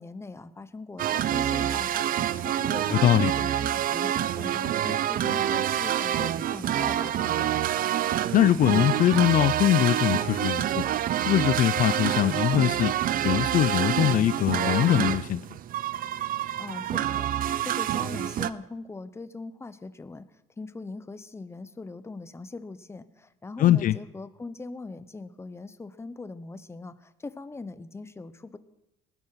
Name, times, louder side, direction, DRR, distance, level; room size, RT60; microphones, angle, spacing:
voice 1, 0.0-7.5 16.6-20.3 20.6-28.6, left 3 dB, 15° left, 14 dB, 0.9 m, -41 dB
sound 1, 1.0-18.5, right 11 dB, 55° right, 0.6 m, -27 dB
voice 2, 2.9-3.3 8.3-10.8 11.2-12.9 13.2-15.4 23.6-24.0, left 12 dB, 55° left, 16 dB, 0.5 m, -22 dB
19.5 x 11.5 x 5.7 m, 0.90 s
cardioid pair, 110°, 17 cm